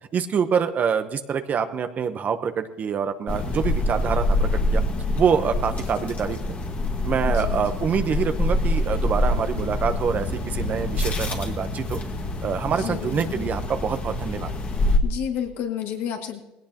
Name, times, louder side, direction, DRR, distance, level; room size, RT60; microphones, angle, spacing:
voice 1, 0.1-4.8 5.1-6.4 7.0-12.0 12.4-14.5, right 7 dB, 40° right, 8 dB, 0.9 m, -25 dB
sound 1, 3.3-15.0, left 2 dB, 35° left, 1.9 m, -25 dB
voice 2, 7.3-7.8 12.7-13.5 15.0-16.4, left 9 dB, 70° left, 2 dB, 2.3 m, -31 dB
19.0 x 17.0 x 2.9 m, 1.0 s
supercardioid pair, 90°, 4 cm